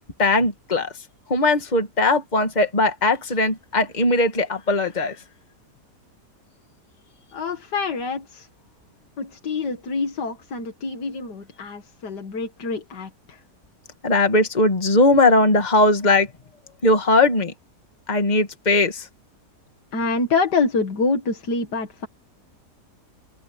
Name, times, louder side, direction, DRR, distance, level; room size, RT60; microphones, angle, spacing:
voice 1, 0.2-0.9 1.3-5.2 14.0-16.3 16.8-17.5 18.1-19.1, left 2 dB, 25° left, 2.1 m, -19 dB
voice 2, 7.3-8.5 9.2-13.4 19.9-22.1, left 4 dB, 85° left, 2.5 m, -26 dB
omnidirectional pair, 1.8 m